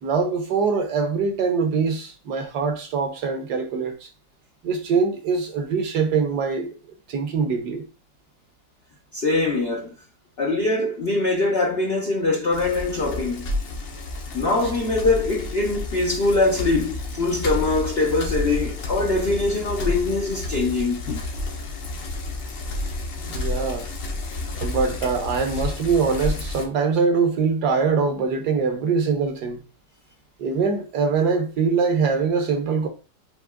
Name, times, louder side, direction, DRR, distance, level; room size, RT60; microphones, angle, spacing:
voice 1, 0.0-4.1 4.6-6.7 7.1-7.8 23.2-23.9 24.5-29.6 30.4-32.9, right 5 dB, 65° right, 1.3 m, -23 dB
voice 2, 9.1-9.9 10.4-13.5 14.3-21.2, left 2 dB, 60° left, 0.6 m, -23 dB
Bicycle, 12.5-26.6, left 2 dB, 75° left, 1.6 m, -30 dB
7.3 x 3.0 x 2.3 m
omnidirectional pair, 2.0 m